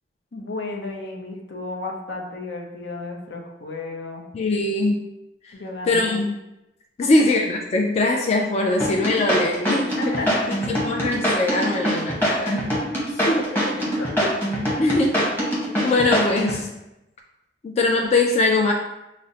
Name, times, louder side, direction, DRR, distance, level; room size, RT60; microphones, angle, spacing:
voice 1, 0.3-4.2 5.5-6.2 7.0-7.1 10.0-10.5 13.5-14.3 14.7-14.9, left 2 dB, 80° left, 0 dB, 0.7 m, -33 dB
voice 2, 4.3-5.0 5.8-6.4 7.0-10.2 10.5-12.7 13.1-13.5 14.8-15.2 15.8-16.7 17.6-18.7, left 2 dB, 40° left, 1 dB, 0.3 m, -22 dB
sound 1, 8.8-16.6, equal, 10° left, 1.1 m, -23 dB
6.1 x 2.0 x 2.7 m, 0.94 s
head